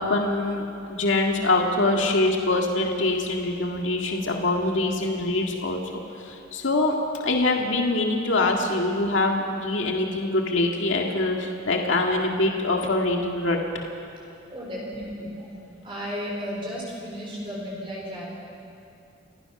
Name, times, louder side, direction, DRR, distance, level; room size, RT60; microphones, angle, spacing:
voice 1, 0.0-5.8 6.2-6.9 7.2-13.6, left 2 dB, 80° left, 1 dB, 2.0 m, -24 dB
voice 2, 14.5-15.5 15.8-18.2, equal, 30° right, -4 dB, 4.5 m, -34 dB
29.5 x 15.5 x 6.0 m, 2.8 s
head